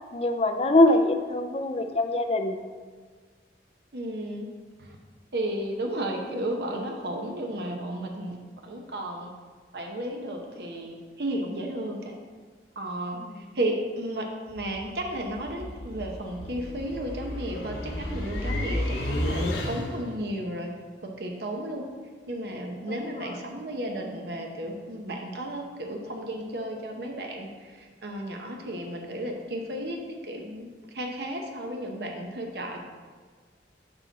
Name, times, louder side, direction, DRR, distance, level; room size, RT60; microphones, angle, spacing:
voice 1, 0.1-2.6 13.3-13.4 23.0-23.2, left 2 dB, 35° left, 7 dB, 0.4 m, -23 dB
voice 2, 3.9-4.5 4.8-5.0 5.3-9.3 9.7-12.2 12.8-20.7 21.0-21.8 22.3-30.0 30.2-30.7 30.9-32.8, right 1 dB, 65° right, 2 dB, 0.8 m, -33 dB
sound 1, 14.5-20.2, left 1 dB, 75° left, 1.1 m, -32 dB
6.7 x 6.0 x 4.0 m, 1.5 s
head